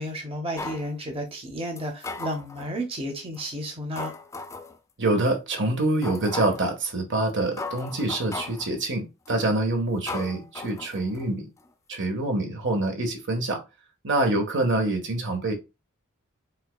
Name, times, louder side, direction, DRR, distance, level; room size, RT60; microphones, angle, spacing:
voice 1, 0.0-4.1, equal, 25° right, 0.9 m, -32 dB
sound 1, 0.6-0.9 1.8-2.7 3.3-3.5 4.0-4.8 5.3-5.4 6.0-6.7 7.3-7.4 7.6-8.7 9.3-9.5 10.1-11.3 11.6-11.7, left 3 dB, 15° left, 0.4 m, -37 dB
voice 2, 5.0-11.5 11.9-13.6 14.0-15.5, right 2 dB, 60° right, 1.3 m, -26 dB
5.6 x 3.9 x 2.2 m
head